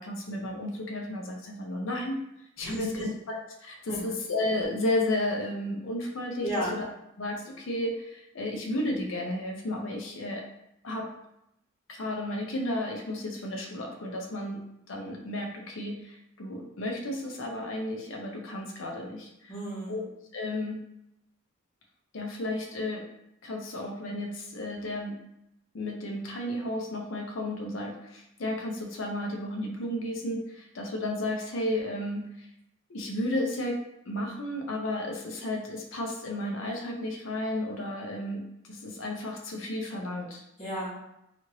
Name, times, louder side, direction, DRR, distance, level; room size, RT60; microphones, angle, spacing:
voice 1, 0.0-2.2 2.6-6.9 7.2-10.4 10.8-11.1 11.9-14.6 14.9-19.5 19.9-20.0 20.3-20.8 22.1-23.0 23.4-25.2 25.7-32.5 32.9-33.8 34.1-38.4 38.7-40.4, left 1 dB, 75° left, 1 dB, 0.6 m, -33 dB
voice 2, 2.6-3.1 3.9-4.0 6.4-6.7 19.5-20.0 40.6-40.9, right 1 dB, 30° left, -10 dB, 1.1 m, -33 dB
3.0 x 2.5 x 2.8 m, 0.82 s
head